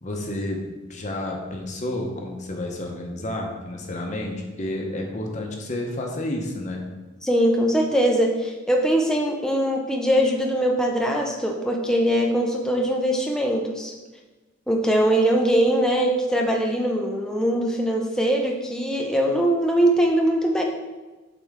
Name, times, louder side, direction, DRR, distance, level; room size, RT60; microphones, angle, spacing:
voice 1, 0.0-0.6 0.9-6.9, left 1 dB, 35° left, 1 dB, 0.9 m, -30 dB
voice 2, 7.2-13.9 14.7-20.6, right 1 dB, 5° left, 0 dB, 0.6 m, -22 dB
7.4 x 4.4 x 3.6 m, 1.2 s
head